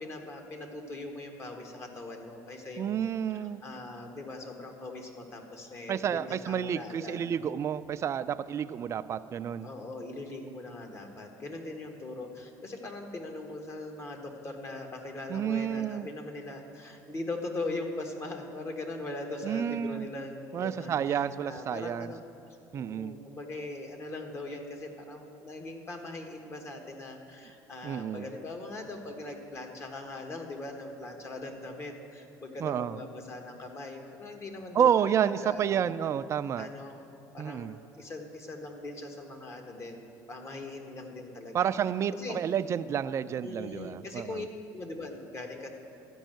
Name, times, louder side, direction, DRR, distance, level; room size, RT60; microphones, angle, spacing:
voice 1, 0.0-7.2 9.6-22.2 22.7-35.8 36.6-37.0 37.3-41.7 42.1-42.4 43.4-44.5 44.7-45.7, left 2 dB, 35° left, 3 dB, 1.5 m, -40 dB
voice 2, 2.8-3.6 5.9-9.7 15.3-16.1 19.4-20.1 20.5-22.1 22.7-23.2 27.8-28.3 32.6-33.0 34.7-36.7 37.4-37.8 41.5-44.5, right 8 dB, 40° right, 12 dB, 0.4 m, -30 dB
13.0 x 5.4 x 9.1 m, 2.6 s
cardioid pair, 110°, 8 cm